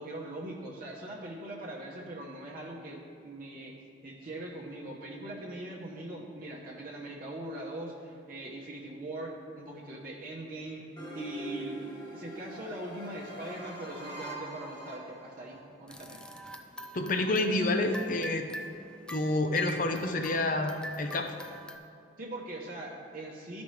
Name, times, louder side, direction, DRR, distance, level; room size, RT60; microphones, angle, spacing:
voice 1, 0.0-3.8 4.0-10.9 11.1-16.2 22.2-23.6, right 1 dB, 45° right, -3 dB, 0.9 m, -41 dB
sound 1, 11.0-15.6, right 1 dB, 25° left, 1.2 m, -43 dB
sound 2, 15.9-21.8, equal, 5° left, 0.3 m, -45 dB
voice 2, 16.9-18.5 19.1-21.3, left 2 dB, 45° left, 5 dB, 0.6 m, -28 dB
13.0 x 5.2 x 3.2 m, 2.5 s
head